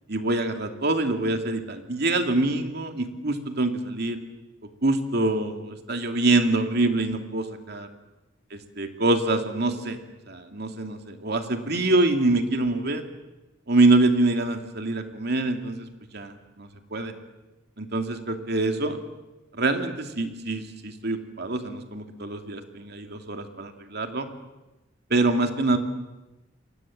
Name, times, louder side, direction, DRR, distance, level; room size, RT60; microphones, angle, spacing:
voice 1, 0.1-4.2 4.8-7.9 8.8-10.0 10.3-13.0 13.7-15.9 16.1-17.1 17.8-19.0 19.5-24.3 25.1-25.8, right 2 dB, 60° right, 5 dB, 2.6 m, -25 dB
29.0 x 23.0 x 7.6 m, 1.0 s
head